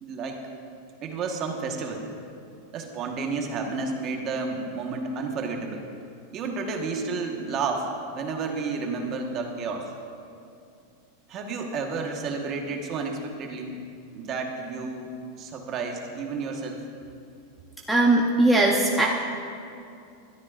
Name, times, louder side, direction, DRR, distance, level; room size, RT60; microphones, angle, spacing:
voice 1, 0.0-0.4 1.0-2.1 2.7-5.8 6.3-7.9 8.1-9.9 11.3-13.8 14.1-15.1 15.4-16.8, right 4 dB, 30° right, 2 dB, 1.3 m, -31 dB
voice 2, 17.9-19.1, right 2 dB, ahead, -4 dB, 0.8 m, -19 dB
20.5 x 13.0 x 2.5 m, 2.5 s
supercardioid pair, 165°, 0 cm